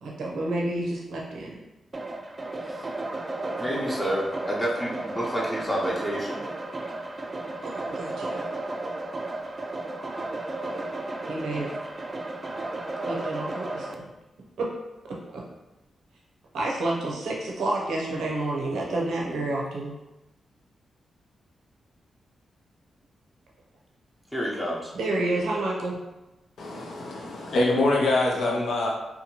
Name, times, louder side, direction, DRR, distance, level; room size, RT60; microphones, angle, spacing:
voice 1, 0.0-1.6 7.9-8.4 11.3-11.7 13.0-14.1 14.6-14.7 15.3-15.4 16.5-19.9 24.9-26.0, right 2 dB, 85° right, -3 dB, 0.6 m, -29 dB
sound 1, 1.9-13.9, right 2 dB, 35° right, 0.3 m, -33 dB
voice 2, 3.6-6.4 24.3-24.9, equal, 15° left, -5 dB, 0.7 m, -29 dB
voice 3, 26.6-28.9, left 2 dB, 80° left, -2 dB, 0.6 m, -24 dB
2.8 x 2.2 x 2.9 m, 1.0 s
cardioid pair, 70°, 0 cm